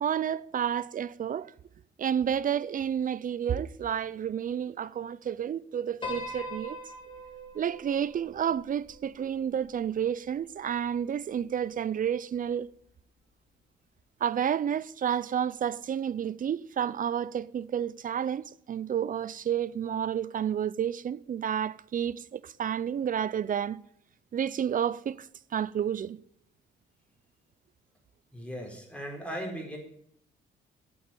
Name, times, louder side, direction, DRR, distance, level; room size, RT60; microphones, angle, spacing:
voice 1, 0.0-1.5 2.0-6.8 7.5-12.7 14.2-23.8 24.3-25.3 25.5-26.2, right 9 dB, 45° right, 0.5 m, -30 dB
Piano, 6.0-10.4, left 1 dB, 25° left, 3.3 m, -42 dB
voice 2, 28.3-29.8, equal, 5° left, 4.2 m, -37 dB
8.8 x 7.9 x 9.0 m
cardioid pair, 90°, 20 cm